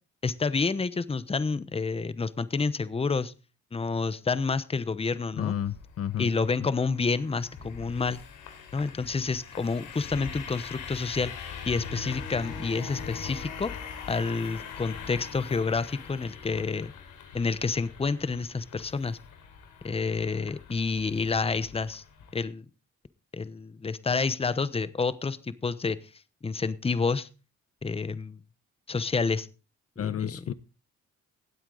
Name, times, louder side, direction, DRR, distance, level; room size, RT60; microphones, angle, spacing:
voice 1, 0.2-3.3 3.7-5.5 6.2-8.2 8.7-11.3 11.7-13.7 14.1-16.9 17.3-19.2 19.8-22.0 22.3-22.7 23.3-26.0 26.4-27.3 27.8-28.4 28.9-29.5 30.0-30.3, left 4 dB, 20° left, 0.9 m, -29 dB
sound 1, 5.4-22.4, left 6 dB, 85° left, 3.6 m, -42 dB
voice 2, 5.4-6.3 30.0-30.5, left 10 dB, 50° left, 0.8 m, -31 dB
18.5 x 8.1 x 3.9 m
cardioid pair, 90°, 30 cm